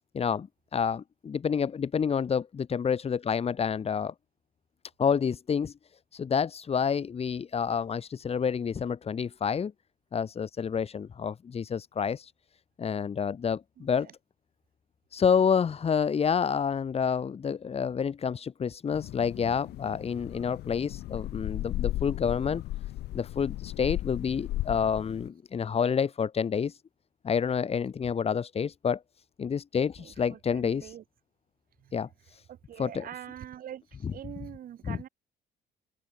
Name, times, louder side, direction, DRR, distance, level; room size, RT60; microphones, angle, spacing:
voice 1, 0.1-4.1 5.0-5.7 6.1-9.7 10.1-12.3 12.8-14.1 15.1-22.6 23.1-26.8 27.2-29.0 29.4-31.0 31.9-32.4 32.8-33.1 34.0-34.5 34.8-35.0, left 7 dB, 35° left, 3.1 m, -29 dB
sound 1, 18.9-25.3, left 16 dB, 80° left, 7.4 m, -36 dB
voice 2, 30.5-31.0 32.7-33.8 34.1-35.1, right 11 dB, 55° right, 5.4 m, -42 dB
cardioid pair, 110°, 17 cm